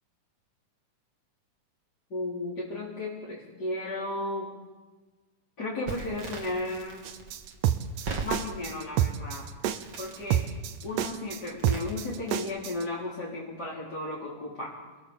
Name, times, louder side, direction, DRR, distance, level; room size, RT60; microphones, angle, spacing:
voice 1, 2.1-4.5 5.6-7.0 8.2-9.5 10.0-10.5 10.8-14.8, left 2 dB, 30° left, -7 dB, 4.6 m, -34 dB
Crackle, 5.9-12.7, right 4 dB, 45° right, 3.6 m, -41 dB
sound 1, 7.0-12.8, right 10 dB, 80° right, 2.7 m, -28 dB
29.0 x 21.0 x 7.3 m, 1.3 s
omnidirectional pair, 3.8 m